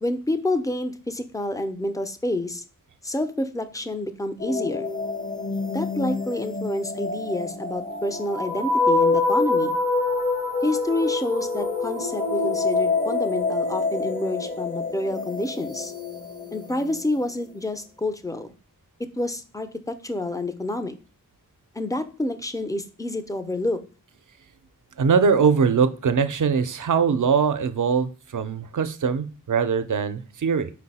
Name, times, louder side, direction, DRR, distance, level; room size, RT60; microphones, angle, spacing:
voice 1, 0.0-2.6 3.0-4.9 5.7-9.8 10.6-15.9 16.5-18.5 19.0-20.9 21.8-23.8, left 1 dB, 10° left, 9 dB, 0.4 m, -28 dB
sound 1, 4.4-17.1, left 3 dB, 40° left, 0.9 m, -26 dB
voice 2, 25.0-30.7, right 6 dB, 65° right, 11 dB, 0.4 m, -22 dB
4.6 x 2.1 x 4.0 m, 0.36 s
wide cardioid pair, 50°, 33 cm